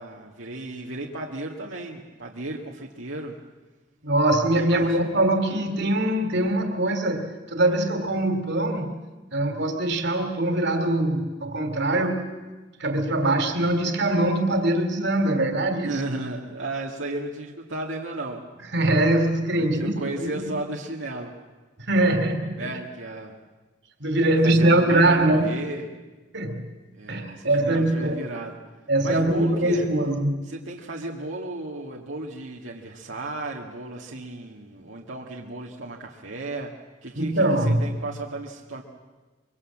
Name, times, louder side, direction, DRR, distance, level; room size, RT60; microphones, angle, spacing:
voice 1, 0.0-3.4 4.5-5.0 15.8-18.4 19.6-21.3 22.6-23.3 24.3-25.9 26.9-28.6 29.0-29.9 30.5-36.7 37.0-38.8, right 2 dB, 85° right, -1 dB, 2.1 m, -34 dB
voice 2, 4.0-8.9 9.3-12.2 12.8-16.0 18.7-20.5 21.8-22.7 24.0-25.5 26.3-26.6 27.1-28.2 28.9-30.4 37.2-37.9, right 1 dB, 60° right, 6 dB, 2.9 m, -22 dB
24.0 x 24.0 x 7.4 m, 1.3 s
head